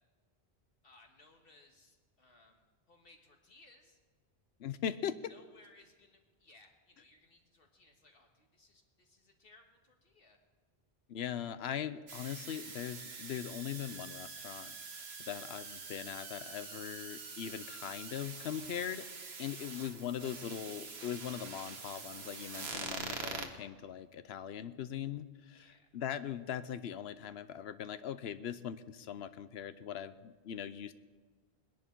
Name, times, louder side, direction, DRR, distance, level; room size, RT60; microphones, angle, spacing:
voice 1, 0.8-4.0 5.3-10.4 19.6-19.7 25.5-25.9, left 2 dB, 65° left, 2 dB, 1.9 m, -63 dB
voice 2, 4.6-5.1 11.1-19.1 19.4-30.9, left 9 dB, 85° left, 13 dB, 0.9 m, -40 dB
sound 1, 12.1-23.5, right 4 dB, 85° right, 1.4 m, -45 dB
21.0 x 10.5 x 4.5 m, 1.4 s
omnidirectional pair, 1.0 m